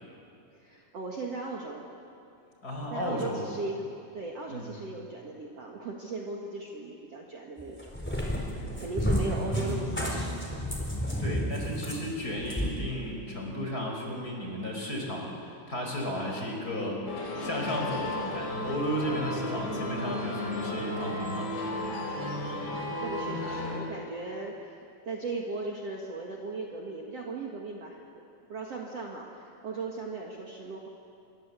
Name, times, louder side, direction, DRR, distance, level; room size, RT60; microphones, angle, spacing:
voice 1, 0.5-1.9 2.9-7.9 8.3-10.4 23.0-24.8 25.0-28.0 28.5-30.9, right 3 dB, 70° right, -1 dB, 1.5 m, -37 dB
voice 2, 2.6-3.5 4.5-4.7 11.2-15.3 15.7-17.0 17.4-21.5, equal, 20° left, 0 dB, 4.8 m, -34 dB
Cat, 7.6-12.7, equal, 5° left, 3.2 m, -31 dB
sound 1, 17.1-23.8, left 1 dB, 55° left, 6.6 m, -34 dB
27.0 x 24.0 x 8.3 m, 2.6 s
omnidirectional pair, 5.9 m